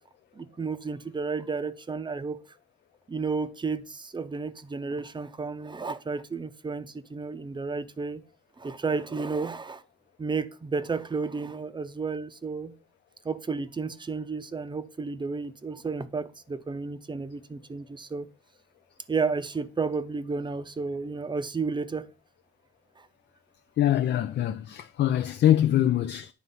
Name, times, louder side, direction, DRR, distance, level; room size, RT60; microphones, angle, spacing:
voice 1, 0.3-2.4 3.1-8.2 8.6-9.8 10.2-12.7 13.2-18.3 19.1-22.1, right 4 dB, 25° right, 0.7 m, -32 dB
voice 2, 23.8-26.3, left 12 dB, 60° left, 0.5 m, -23 dB
9.4 x 3.2 x 5.5 m
cardioid pair, 90°, 20 cm